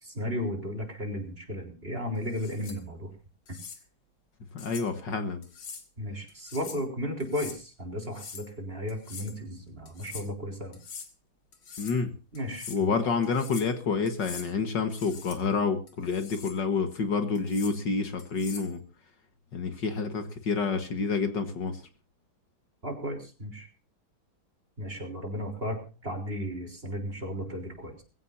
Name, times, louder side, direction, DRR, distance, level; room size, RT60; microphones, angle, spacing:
voice 1, 0.0-3.1 6.0-10.8 12.3-12.9 22.8-23.7 24.8-28.0, equal, 25° right, 3 dB, 4.0 m, -34 dB
sound 1, 2.3-2.8 3.5-3.8 4.6-4.9 5.4-5.9 6.3-6.9 7.2-7.6 8.0-8.5 8.9-9.4 9.9-10.3 10.7-11.1 11.5-12.0 12.3-12.8 13.2-13.7 14.1-14.5 14.9-15.4 15.9-16.6 17.4-17.8 18.2-18.7, left 6 dB, 75° left, 2.8 m, -44 dB
voice 2, 4.5-5.4 11.8-12.1 12.7-18.8 19.5-21.8, left 4 dB, 60° left, 8 dB, 2.1 m, -28 dB
21.5 x 16.0 x 2.8 m, 0.34 s
omnidirectional pair, 2.2 m